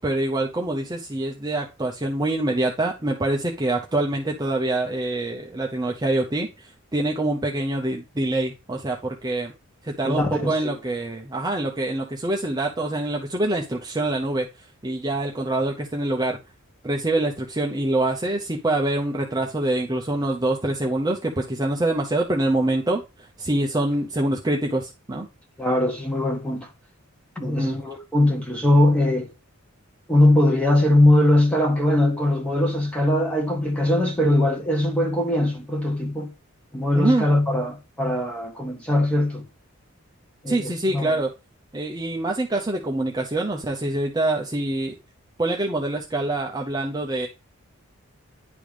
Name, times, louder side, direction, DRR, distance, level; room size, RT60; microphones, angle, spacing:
voice 1, 0.0-9.5 9.8-16.4 16.8-25.3 27.4-27.8 36.9-37.3 40.5-41.3 41.7-44.9 45.4-47.3, right 2 dB, 20° right, 0.7 m, -25 dB
voice 2, 10.0-10.7 25.6-26.7 27.3-29.3 30.1-36.3 36.7-39.4 40.4-41.1, left 1 dB, 5° left, 1.6 m, -21 dB
10.5 x 3.5 x 4.9 m
head